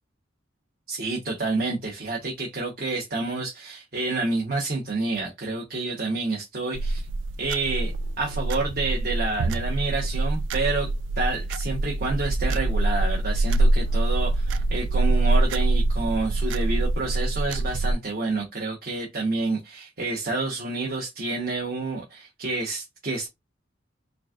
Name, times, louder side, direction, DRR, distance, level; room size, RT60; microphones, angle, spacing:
voice 1, 0.9-7.0 7.4-10.9 11.2-23.3, right 3 dB, 50° right, 1.0 m, -29 dB
sound 1, 6.7-17.9, right 2 dB, 80° right, 0.4 m, -24 dB
3.9 x 3.5 x 2.4 m
head